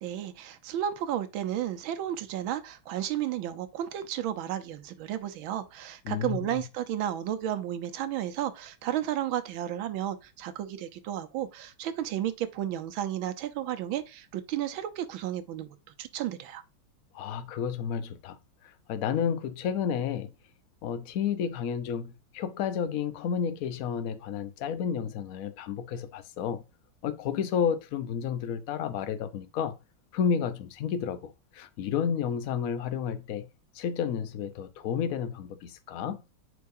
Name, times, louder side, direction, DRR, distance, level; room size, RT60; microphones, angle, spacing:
voice 1, 0.0-15.7 16.0-16.6, right 11 dB, 70° right, 1.5 m, -33 dB
voice 2, 6.1-6.6 17.1-20.3 20.8-26.6 27.0-29.8 30.1-33.5 33.7-36.2, left 7 dB, 70° left, 0.8 m, -31 dB
9.4 x 4.0 x 2.6 m
omnidirectional pair, 2.4 m